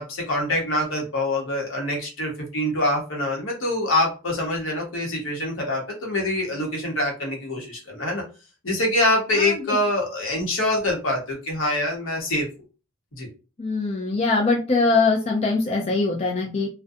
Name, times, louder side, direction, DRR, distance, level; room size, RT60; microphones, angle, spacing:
voice 1, 0.0-8.2 8.6-12.5 13.2-13.3, left 1 dB, 75° left, 0 dB, 0.9 m, -25 dB
voice 2, 9.3-9.8 13.6-16.7, left 3 dB, 30° left, -1 dB, 0.4 m, -22 dB
2.4 x 2.1 x 2.5 m, 0.33 s
head